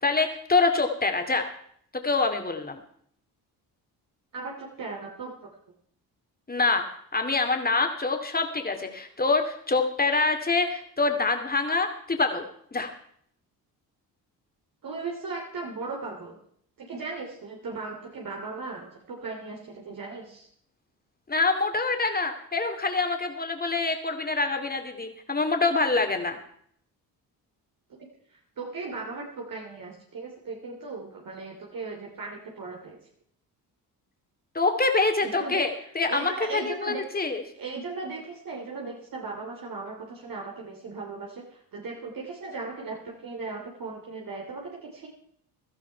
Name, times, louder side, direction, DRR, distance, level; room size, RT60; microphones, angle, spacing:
voice 1, 0.0-1.5 1.9-2.8 6.5-6.9 7.1-12.5 12.7-12.9 21.3-26.4 34.5-37.4, left 3 dB, 25° left, 5 dB, 2.6 m, -25 dB
voice 2, 4.3-5.5 14.8-16.4 16.8-20.5 28.3-33.0 35.2-37.0 37.6-45.1, right 3 dB, 55° right, -1 dB, 3.1 m, -37 dB
16.5 x 12.5 x 4.6 m, 0.65 s
supercardioid pair, 70°, 39 cm